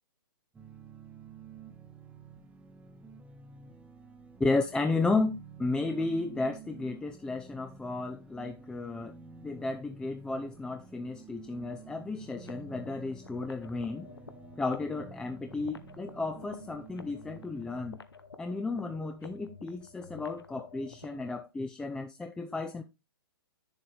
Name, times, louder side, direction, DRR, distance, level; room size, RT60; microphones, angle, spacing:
sound 1, 0.5-17.8, right 6 dB, 10° right, 1.2 m, -50 dB
voice 1, 4.4-9.2 9.4-14.1 14.6-18.0 18.4-22.8, left 3 dB, 5° left, 0.5 m, -33 dB
sound 2, 12.4-21.4, left 5 dB, 90° left, 0.9 m, -51 dB
8.8 x 7.2 x 3.3 m
hypercardioid pair, 125°, 12 cm